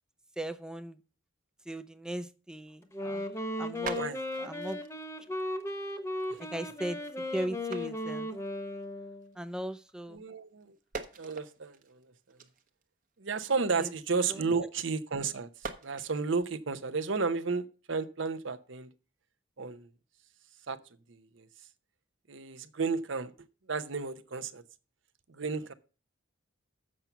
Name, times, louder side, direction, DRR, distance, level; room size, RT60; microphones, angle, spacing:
voice 1, 0.4-1.0 1.7-3.3 3.6-4.0 4.4-4.8 6.5-7.0 7.3-8.3 9.4-10.2 13.8-13.9 14.3-14.7, right 1 dB, 5° right, 0.5 m, -38 dB
Wind instrument woodwind instrument, 2.8-9.4, left 1 dB, 15° left, 1.0 m, -36 dB
sound 1, 3.3-3.4 3.6-8.9 9.2-10.3 10.6-15.0 15.4-16.5, right 4 dB, 40° right, 1.0 m, -46 dB
voice 2, 10.1-10.8 11.2-12.1 13.2-15.5 15.8-18.9 19.6-19.9 20.7-20.8 21.1-21.5 22.3-23.3 23.7-24.6 25.3-25.7, right 4 dB, 65° right, 0.8 m, -32 dB
7.5 x 5.9 x 6.8 m
head